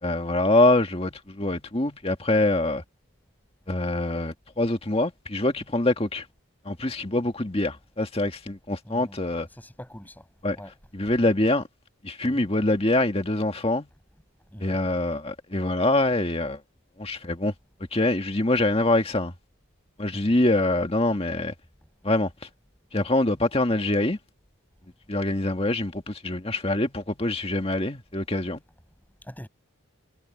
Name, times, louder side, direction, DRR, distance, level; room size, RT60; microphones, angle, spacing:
voice 1, 0.0-2.8 3.7-6.2 6.7-9.5 10.4-10.6 10.9-11.6 12.0-13.9 14.6-16.6 17.0-17.5 17.9-19.3 20.0-21.5 22.0-22.3 22.9-24.2 25.1-28.6, left 2 dB, 25° left, 1.8 m, -24 dB
voice 2, 8.8-10.3 10.6-10.7 12.2-12.5 14.5-14.8 20.1-20.3 29.2-29.5, equal, 10° left, 5.8 m, -43 dB
head